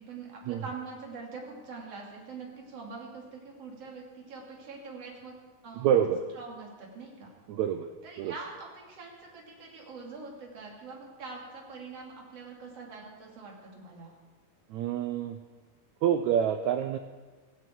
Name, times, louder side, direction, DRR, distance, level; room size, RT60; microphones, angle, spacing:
voice 1, 0.0-5.4 5.6-6.0 6.4-7.3 8.0-14.1, right 4 dB, 45° right, -1 dB, 3.6 m, -44 dB
voice 2, 5.7-6.2 7.5-7.9 8.2-8.3 14.7-15.4 16.0-17.0, right 9 dB, 85° right, 7 dB, 1.6 m, -27 dB
17.0 x 16.0 x 4.6 m, 1.3 s
omnidirectional pair, 4.0 m